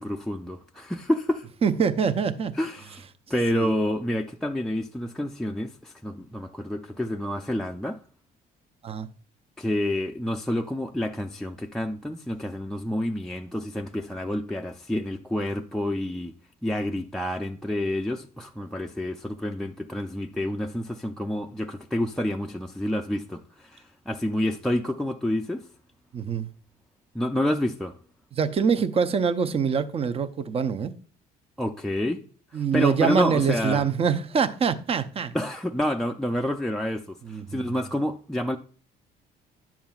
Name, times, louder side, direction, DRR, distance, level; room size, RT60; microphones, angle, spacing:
voice 1, 0.0-1.5 2.6-3.0 3.3-8.0 9.6-16.3 16.6-25.7 27.1-28.0 31.6-32.2 32.5-33.8 35.3-38.6, left 1 dB, 5° left, 0.4 m, -28 dB
voice 2, 1.6-2.5 3.5-3.7 8.8-9.1 26.1-26.5 28.3-30.9 32.5-35.3 37.2-37.8, right 6 dB, 35° right, 0.6 m, -25 dB
10.5 x 7.2 x 2.4 m
cardioid pair, 110°, 17 cm